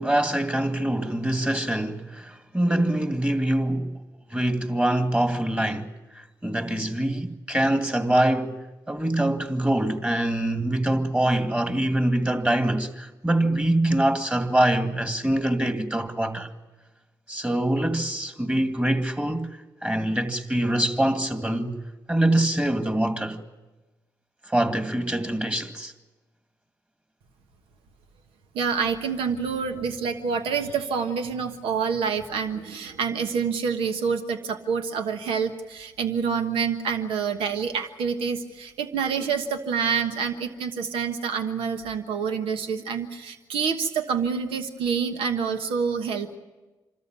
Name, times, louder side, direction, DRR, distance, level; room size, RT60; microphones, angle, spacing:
voice 1, 0.0-3.9 4.3-5.9 6.4-8.6 8.9-16.5 17.3-19.5 19.8-21.8 22.1-23.4 24.5-25.9, right 1 dB, 15° right, 2.2 m, -24 dB
voice 2, 28.5-46.4, right 6 dB, 80° right, 1.3 m, -27 dB
26.0 x 13.5 x 9.5 m
supercardioid pair, 50°, 9 cm